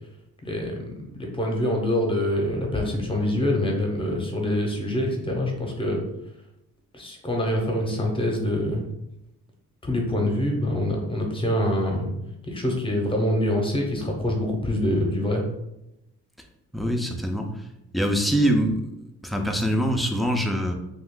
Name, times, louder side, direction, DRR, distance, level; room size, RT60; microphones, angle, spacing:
voice 1, 0.4-6.0 6.9-8.8 9.8-12.1 12.4-15.4, left 1 dB, 15° left, 1 dB, 0.8 m, -25 dB
voice 2, 16.7-17.5 17.9-20.7, equal, ahead, 3 dB, 0.4 m, -24 dB
2.4 x 2.3 x 3.6 m, 0.87 s
cardioid pair, 90°, 30 cm